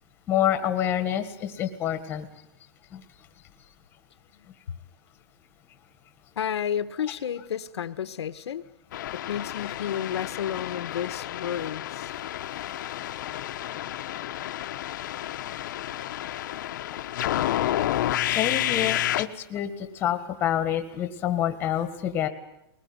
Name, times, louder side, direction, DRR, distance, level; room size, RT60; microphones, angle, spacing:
voice 1, 0.3-2.3 2.9-3.0 18.2-22.3, left 11 dB, 15° left, 8 dB, 1.6 m, -27 dB
voice 2, 6.4-8.6 9.1-12.1, left 9 dB, 85° left, 11 dB, 1.3 m, -31 dB
sound 1, 8.9-19.3, left 13 dB, 45° left, 1.0 m, -30 dB
21.5 x 20.0 x 9.6 m, 0.84 s
hypercardioid pair, 170°, 14 cm